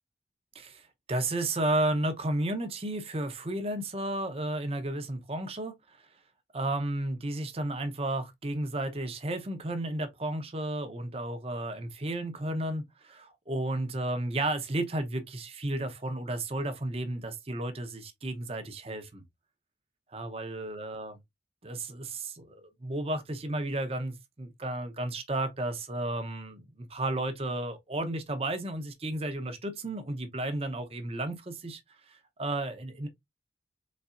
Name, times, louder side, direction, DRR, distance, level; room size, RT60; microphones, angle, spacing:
voice 1, 1.1-5.8 6.5-19.2 20.1-21.2 21.6-26.6 26.9-31.8 32.4-33.1, right 1 dB, 35° right, 0.8 m, -33 dB
4.2 x 3.2 x 2.4 m
head